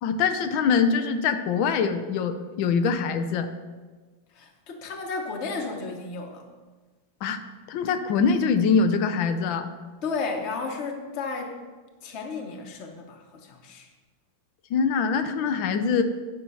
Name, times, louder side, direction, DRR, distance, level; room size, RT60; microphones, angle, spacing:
voice 1, 0.0-3.5 7.2-7.4 7.7-9.7 14.7-16.0, left 5 dB, 90° left, 8 dB, 1.4 m, -23 dB
voice 2, 4.3-6.5 10.0-11.6 12.0-13.9, left 4 dB, 40° left, 3 dB, 1.2 m, -33 dB
10.0 x 5.8 x 5.5 m, 1.4 s
omnidirectional pair, 2.0 m